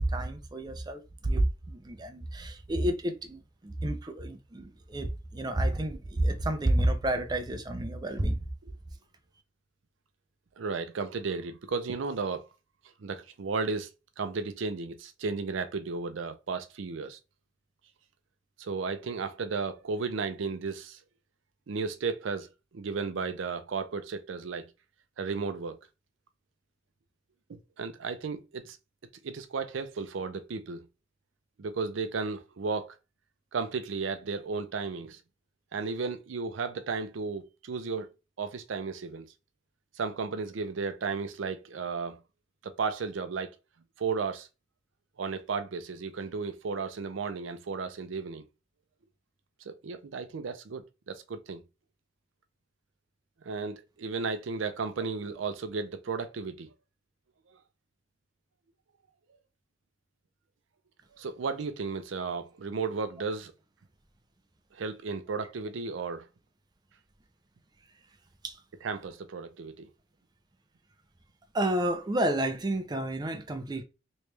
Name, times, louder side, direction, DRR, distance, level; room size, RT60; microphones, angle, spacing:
voice 1, 0.0-8.4 68.4-68.6 71.5-73.8, right 1 dB, 20° right, 0.5 m, -30 dB
voice 2, 10.6-12.5 13.0-13.9 14.2-17.2 18.6-21.0 21.7-24.7 25.2-25.8 27.5-28.8 29.2-30.8 31.6-33.0 33.5-35.2 35.7-38.1 38.4-39.3 40.0-42.2 42.6-43.6 44.0-44.5 45.2-48.4 49.7-51.6 53.4-56.7 61.2-63.5 64.7-66.3 68.8-69.9, right 4 dB, 75° right, 0.5 m, -34 dB
3.1 x 3.1 x 3.2 m
head